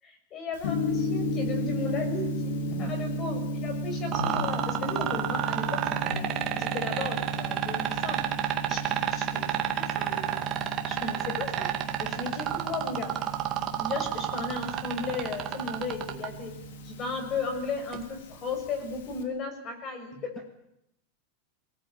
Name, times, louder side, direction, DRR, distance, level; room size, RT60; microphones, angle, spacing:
voice 1, 0.0-8.2 8.7-10.3 10.9-11.7 12.0-13.1 13.8-16.5 16.8-20.3, left 4 dB, 30° left, 5 dB, 6.6 m, -35 dB
Gong, 0.6-19.2, left 1 dB, 75° left, 3.8 m, -35 dB
voice 2, 2.7-3.0 8.6-8.9 16.1-16.3 20.1-20.4, right 4 dB, 15° right, 0 dB, 3.1 m, -44 dB
sound 1, 4.1-16.3 17.9-18.0, right 12 dB, 35° right, 2.4 m, -29 dB
23.0 x 19.0 x 9.1 m, 0.81 s
supercardioid pair, 155°, 0 cm